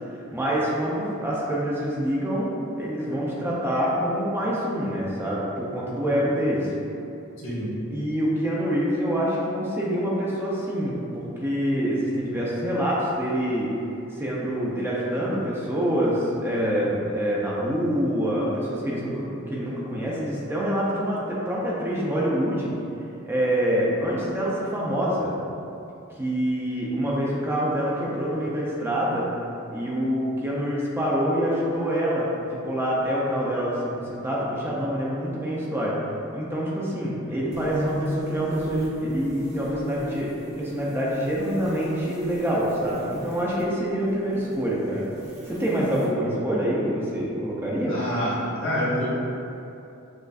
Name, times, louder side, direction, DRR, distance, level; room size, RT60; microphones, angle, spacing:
voice 1, 0.3-6.7 7.9-13.7 14.1-22.7 23.3-25.3 26.2-29.3 29.7-32.3 32.6-36.0 36.3-40.3 40.6-45.1 45.5-47.9, equal, 10° right, -6 dB, 0.4 m, -26 dB
voice 2, 7.4-7.7 47.9-49.1, equal, 65° left, -9 dB, 1.5 m, -27 dB
sound 1, 37.5-43.6 44.2-46.1, equal, 75° right, 1.0 m, -35 dB
6.3 x 2.4 x 2.4 m, 2.7 s
head